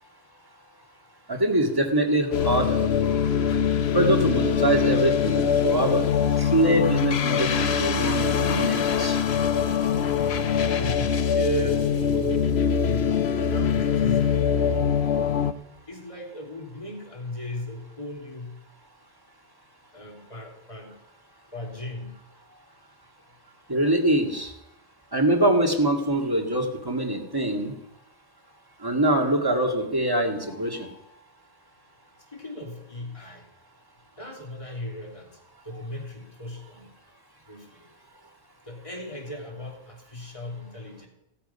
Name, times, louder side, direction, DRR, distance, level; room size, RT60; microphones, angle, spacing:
voice 1, 1.3-2.9 3.9-6.0 6.4-9.2 23.7-24.5 25.1-27.7 28.8-31.0, right 1 dB, 20° right, 2 dB, 2.2 m, -24 dB
sound 1, 2.3-15.5, left 7 dB, 85° left, 1.1 m, -23 dB
voice 2, 10.8-14.5 15.9-18.6 19.9-21.0 21.5-22.2 32.3-33.5 34.2-35.4 35.6-37.0 37.5-37.9 38.7-41.1, equal, 30° left, 1 dB, 3.0 m, -36 dB
16.0 x 13.5 x 5.6 m, 0.84 s
omnidirectional pair, 1.0 m